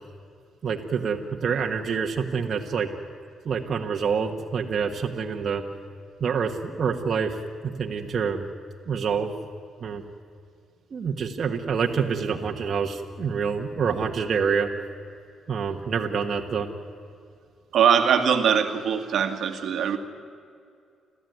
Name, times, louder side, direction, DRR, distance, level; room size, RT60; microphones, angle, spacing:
voice 1, 0.6-2.9 3.4-5.6 6.2-8.4 8.9-9.3 9.8-10.0 10.9-14.7 15.5-16.7, right 6 dB, 50° right, 1 dB, 1.6 m, -27 dB
voice 2, 17.7-20.0, right 7 dB, 65° right, 6 dB, 1.8 m, -21 dB
30.0 x 13.5 x 9.5 m, 2.4 s
cardioid pair, 90°, 0 cm